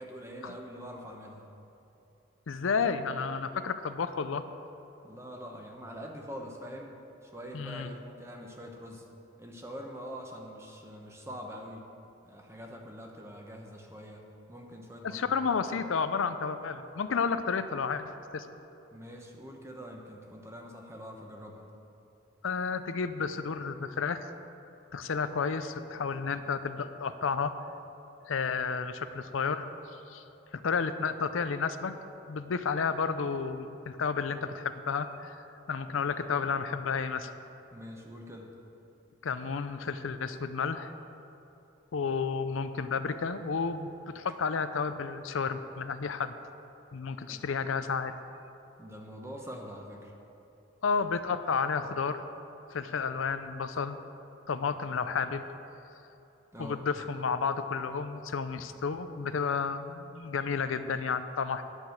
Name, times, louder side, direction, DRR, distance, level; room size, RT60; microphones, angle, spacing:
voice 1, 0.0-1.5 5.0-6.9 7.2-9.0 9.4-11.8 12.2-15.4 18.9-21.7 37.7-38.5 47.3-47.4 48.8-50.1 56.5-56.8, equal, 15° right, 1 dB, 1.0 m, -44 dB
voice 2, 2.5-4.4 7.5-7.9 15.0-18.5 22.4-24.3 24.9-27.5 28.3-29.6 29.9-30.2 30.5-32.0 32.3-35.4 35.7-37.3 39.2-40.9 41.9-46.4 46.9-48.1 50.8-52.3 52.7-54.0 54.5-55.4 56.6-61.6, left 5 dB, 85° left, 10 dB, 0.5 m, -31 dB
10.0 x 6.2 x 8.4 m, 2.9 s
head